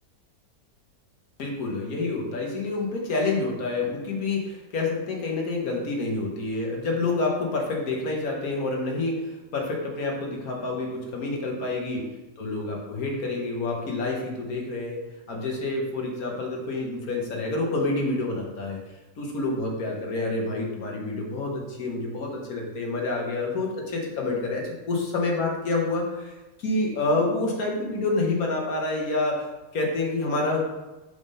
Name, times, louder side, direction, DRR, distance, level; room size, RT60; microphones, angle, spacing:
voice 1, 1.4-12.1 12.4-15.0 15.3-18.8 19.2-29.5 29.7-30.6, left 2 dB, 75° left, -1 dB, 1.6 m, -28 dB
4.9 x 3.6 x 5.3 m, 1.1 s
omnidirectional pair, 1.6 m